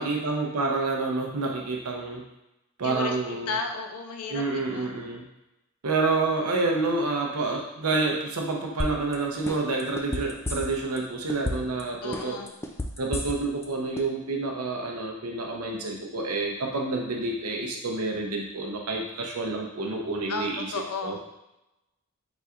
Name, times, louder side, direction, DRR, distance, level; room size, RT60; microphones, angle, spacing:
voice 1, 0.0-2.2 2.8-3.6 4.3-5.2 5.8-12.4 13.0-20.7 21.0-21.2, right 3 dB, 85° right, 0 dB, 0.7 m, -28 dB
voice 2, 2.8-4.9 12.0-12.6 20.3-21.2, left 4 dB, 85° left, 4 dB, 0.5 m, -34 dB
sound 1, 8.8-9.1 9.5-11.0 11.3-11.8 12.1-13.6 14.0-14.1, left 1 dB, 10° left, 0.3 m, -30 dB
4.4 x 4.0 x 2.4 m, 0.92 s
head